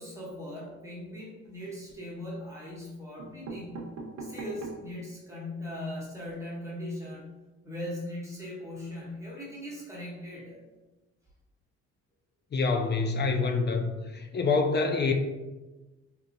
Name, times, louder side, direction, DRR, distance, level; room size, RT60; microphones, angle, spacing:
voice 1, 0.0-3.9 4.2-7.3 7.6-10.6, left 1 dB, 10° right, -6 dB, 1.0 m, -39 dB
sound 1, 1.4-2.1 2.8-2.9 3.2-5.0 5.5-5.6 5.8-5.9 6.2-6.3, right 3 dB, 65° right, 0.7 m, -42 dB
voice 2, 12.5-15.1, left 4 dB, 35° left, 4 dB, 0.4 m, -26 dB
3.6 x 2.7 x 2.6 m, 1.1 s
cardioid pair, 90°, 30 cm